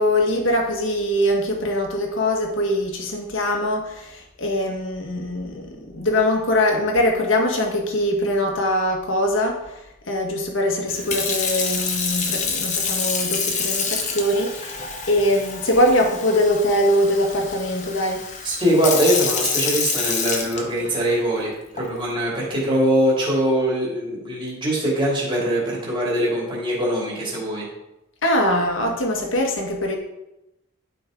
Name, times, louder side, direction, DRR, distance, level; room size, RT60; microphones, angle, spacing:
voice 1, 0.0-9.6 10.1-18.2 28.2-30.0, left 1 dB, 70° left, 1 dB, 1.6 m, -22 dB
Sink (filling or washing) / Fill (with liquid), 10.9-21.1 21.8-22.1, left 5 dB, 35° left, 1.0 m, -27 dB
voice 2, 18.4-27.7, right 1 dB, 25° right, -5 dB, 2.8 m, -22 dB
11.5 x 5.4 x 3.8 m, 0.91 s
head